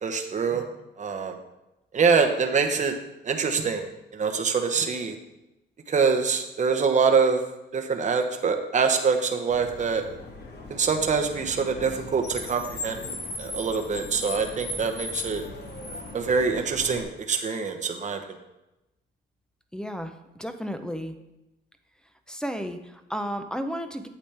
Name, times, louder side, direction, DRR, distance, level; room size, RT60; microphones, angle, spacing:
voice 1, 0.0-0.6 1.0-1.4 1.9-2.9 3.2-3.9 4.1-5.2 5.9-7.4 7.7-10.0 10.7-13.0 13.4-15.4 16.1-18.4, right 5 dB, 35° right, 5 dB, 0.9 m, -24 dB
Car, 9.5-17.0, left 2 dB, 55° left, 1.5 m, -38 dB
voice 2, 19.7-21.2 22.3-24.1, equal, 5° left, 8 dB, 0.7 m, -33 dB
8.5 x 7.3 x 3.4 m, 0.96 s
cardioid pair, 90°, 20 cm